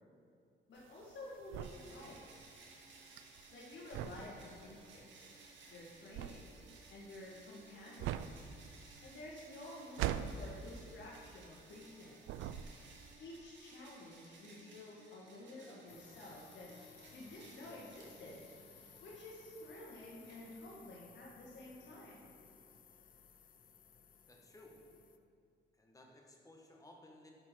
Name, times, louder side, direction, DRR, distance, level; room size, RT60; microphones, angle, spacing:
voice 1, 0.7-2.2 3.5-5.3 5.7-6.5 6.9-8.4 9.0-12.1 13.2-16.7 17.1-18.4 19.0-22.2, left 1 dB, 65° left, -5 dB, 1.7 m, -51 dB
sound 1, 0.8-11.9 12.2-13.1, right 11 dB, 85° right, 0.4 m, -43 dB
sound 2, 1.6-21.0, right 3 dB, 70° right, 1.8 m, -60 dB
sound 3, 15.9-25.2, left 7 dB, 45° left, 0.6 m, -60 dB
voice 2, 24.3-24.8 25.8-27.3, left 1 dB, 15° left, 0 dB, 1.5 m, -58 dB
11.0 x 4.5 x 5.9 m, 2.4 s
cardioid pair, 90°, 20 cm